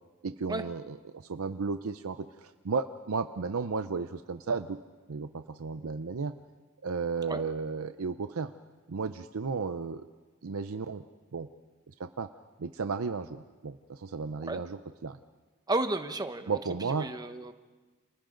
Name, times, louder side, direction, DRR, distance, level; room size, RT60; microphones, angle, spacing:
voice 1, 0.2-4.8 5.1-6.3 6.8-8.5 8.9-10.1 10.4-11.0 11.3-11.5 11.9-12.3 12.6-15.2 16.5-17.1, right 4 dB, 85° right, 9 dB, 0.6 m, -34 dB
voice 2, 15.7-16.6 16.9-17.5, right 2 dB, 20° right, 8 dB, 1.0 m, -32 dB
29.5 x 28.5 x 3.9 m, 1.3 s
head